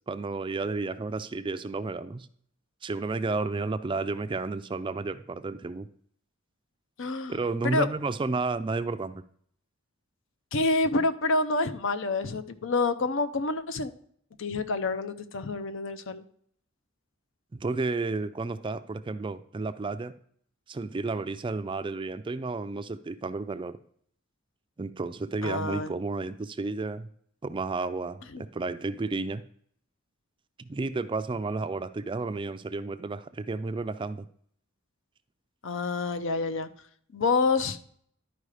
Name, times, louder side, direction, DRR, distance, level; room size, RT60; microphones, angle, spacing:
voice 1, 0.1-2.3 2.8-5.9 7.3-9.2 17.5-20.1 20.7-23.7 24.8-27.1 27.4-29.4 30.6-34.3, right 3 dB, 25° right, 12 dB, 0.4 m, -32 dB
voice 2, 7.0-7.9 10.5-13.9 14.4-16.2 25.4-25.9 28.3-28.4 35.6-36.7 37.1-37.8, left 3 dB, 65° left, 12 dB, 0.7 m, -28 dB
11.5 x 4.8 x 4.9 m, 0.62 s
head